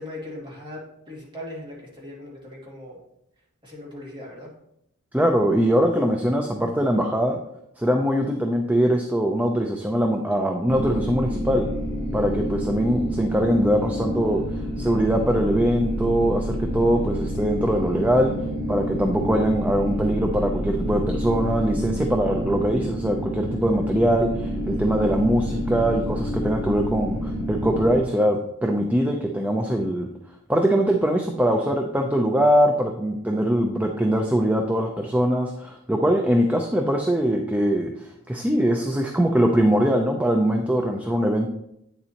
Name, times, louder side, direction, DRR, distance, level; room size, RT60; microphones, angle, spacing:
voice 1, 0.0-3.0 3.6-4.5, left 1 dB, 20° right, -4 dB, 2.4 m, -39 dB
voice 2, 5.1-7.4 7.8-11.7 12.1-18.3 18.7-30.1 30.5-41.5, equal, 5° right, 3 dB, 0.5 m, -22 dB
sound 1, 10.7-28.0, equal, 25° left, 1.6 m, -28 dB
8.7 x 6.9 x 2.9 m, 0.77 s
head